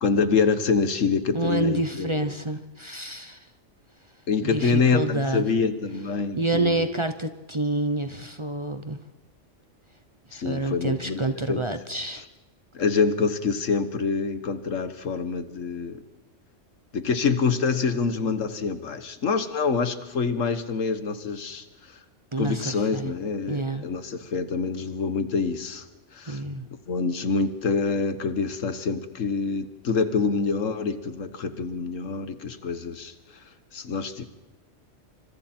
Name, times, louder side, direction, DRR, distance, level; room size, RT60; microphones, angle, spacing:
voice 1, 0.0-2.4 4.3-6.9 10.3-11.6 12.2-12.3 12.7-16.0 16.9-21.7 22.4-25.9 26.1-26.4 26.9-33.1 33.7-34.3, left 5 dB, 80° left, 10 dB, 1.7 m, -26 dB
voice 2, 1.3-3.5 4.4-5.5 6.4-9.0 10.3-12.2 22.3-23.1 23.5-23.8 26.3-26.7, right 2 dB, 25° right, 8 dB, 0.8 m, -28 dB
28.5 x 25.5 x 4.5 m, 1.1 s
omnidirectional pair, 1.3 m